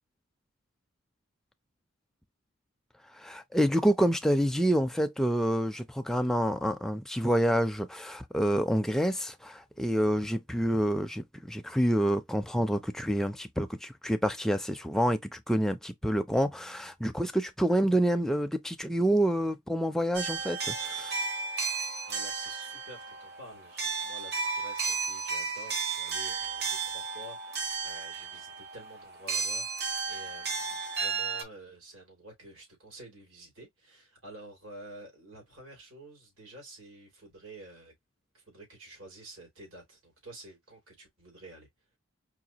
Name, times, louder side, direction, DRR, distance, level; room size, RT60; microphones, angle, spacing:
voice 1, 3.2-21.1, equal, ahead, 0.3 m, -28 dB
sound 1, 20.1-31.4, right 5 dB, 50° right, 0.9 m, -34 dB
voice 2, 22.1-37.9 38.3-41.7, right 1 dB, 90° right, 2.8 m, -50 dB
4.9 x 2.4 x 2.8 m
head